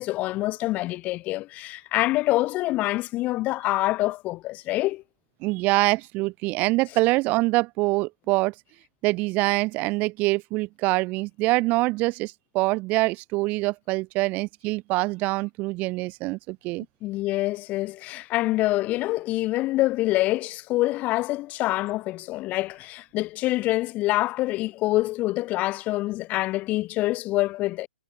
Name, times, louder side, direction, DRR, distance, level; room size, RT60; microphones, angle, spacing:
voice 1, 0.0-5.0 17.0-27.9, left 18 dB, 25° left, 2.3 m, -26 dB
voice 2, 5.4-8.5 9.0-16.9, right 22 dB, 30° right, 3.9 m, -25 dB
hypercardioid pair, 130°, 6 cm